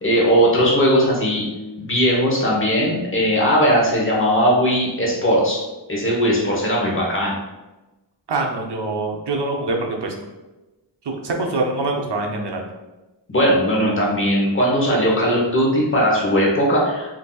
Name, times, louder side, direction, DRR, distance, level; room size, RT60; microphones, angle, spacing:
voice 1, 0.0-1.5 1.8-5.6 5.9-7.4 13.3-17.1, equal, 25° left, -4 dB, 0.9 m, -18 dB
voice 2, 8.3-10.1 11.1-12.6, right 2 dB, 60° right, 1 dB, 0.6 m, -24 dB
3.8 x 2.7 x 2.3 m, 1.1 s
wide cardioid pair, 80°, 46 cm